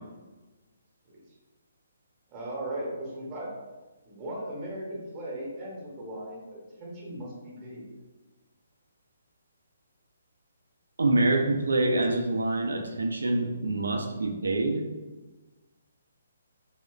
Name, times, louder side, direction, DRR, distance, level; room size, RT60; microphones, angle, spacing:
voice 1, 2.3-3.5 4.1-7.9, right 1 dB, 30° right, -4 dB, 0.9 m, -37 dB
voice 2, 11.0-14.8, right 2 dB, 70° right, 3 dB, 0.4 m, -26 dB
3.2 x 2.8 x 2.3 m, 1.2 s
figure-of-eight pair, 135°, 0 cm